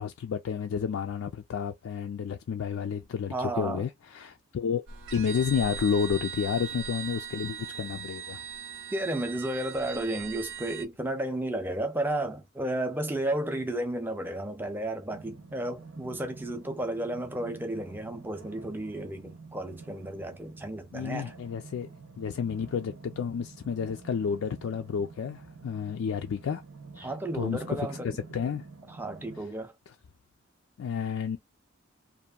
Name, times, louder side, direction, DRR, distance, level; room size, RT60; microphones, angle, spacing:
voice 1, 0.0-4.8 5.1-8.4 20.9-21.9 22.2-26.6 27.0-28.6 30.8-31.4, left 7 dB, 75° left, 0.3 m, -31 dB
voice 2, 3.3-3.8 8.9-21.3 27.0-28.2 28.9-29.7, right 1 dB, 10° right, 0.5 m, -33 dB
sound 1, 4.9-10.9, right 7 dB, 60° right, 0.6 m, -39 dB
sound 2, 15.1-29.4, right 4 dB, 90° right, 1.0 m, -48 dB
2.8 x 2.5 x 2.3 m
head